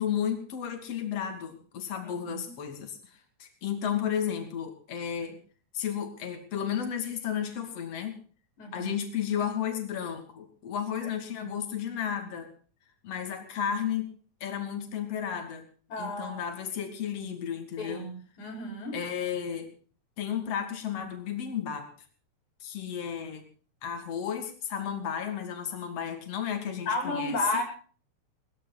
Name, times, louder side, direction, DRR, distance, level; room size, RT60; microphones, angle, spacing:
voice 1, 0.0-5.4 5.7-8.2 8.7-12.5 13.0-14.1 14.4-15.7 16.0-18.1 18.9-19.7 20.2-21.9 22.6-23.4 23.8-27.6, left 8 dB, 55° left, 5 dB, 3.6 m, -33 dB
voice 2, 2.0-2.4 8.6-8.9 11.0-11.1 15.9-16.4 17.8-18.9 26.9-27.6, left 2 dB, 75° left, 3 dB, 6.7 m, -32 dB
20.0 x 14.5 x 4.1 m, 0.42 s
omnidirectional pair, 3.4 m